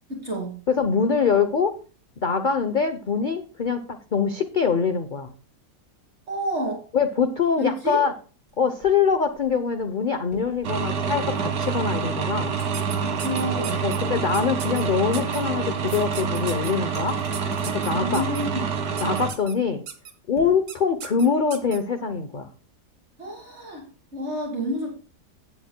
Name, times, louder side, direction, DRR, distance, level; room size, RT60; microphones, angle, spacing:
voice 1, 0.1-0.6 6.3-6.8 7.6-8.0 13.0-13.9 17.9-18.8 23.2-23.8 24.1-24.9, equal, 40° right, 0 dB, 1.8 m, -29 dB
voice 2, 0.7-1.7 2.2-5.3 6.9-8.1 8.6-12.6 13.8-17.2 17.7-18.3 19.0-19.8 20.3-22.5, left 6 dB, 50° left, 8 dB, 0.6 m, -24 dB
sound 1, 8.5-8.6 8.8-11.8 12.2-12.7 12.9-13.1 13.6-15.5 15.9-16.5 16.8-17.7 18.0-18.3 18.6-18.8 19.2-19.4 20.4-21.1, equal, 25° left, 6.3 m, -47 dB
sound 2, 10.6-19.3, right 6 dB, 65° right, 1.6 m, -27 dB
sound 3, 12.7-14.0 14.3-14.8 15.1-15.4 16.1-16.7 17.3-18.4 19.0-19.5 19.9-20.1 20.7-20.8 21.0-21.8, right 7 dB, 80° right, 1.9 m, -36 dB
17.0 x 7.3 x 2.2 m, 0.36 s
omnidirectional pair, 1.8 m